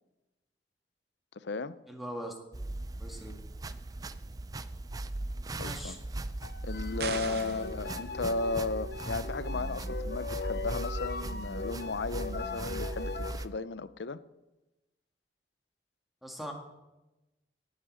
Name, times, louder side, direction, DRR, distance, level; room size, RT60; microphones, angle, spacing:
voice 1, 1.3-1.8 5.5-6.0 6.6-14.2, left 3 dB, 80° left, 15 dB, 0.6 m, -35 dB
voice 2, 1.9-2.3 3.0-3.3 5.6-6.0 7.2-7.6 16.2-16.5, equal, ahead, 2 dB, 1.7 m, -41 dB
sound 1, 2.5-13.5, right 2 dB, 20° right, 0.4 m, -38 dB
sound 2, 6.3-13.3, left 4 dB, 60° left, 1.1 m, -40 dB
sound 3, 7.0-7.7, right 6 dB, 60° right, 0.8 m, -37 dB
18.0 x 7.5 x 6.4 m, 1.0 s
head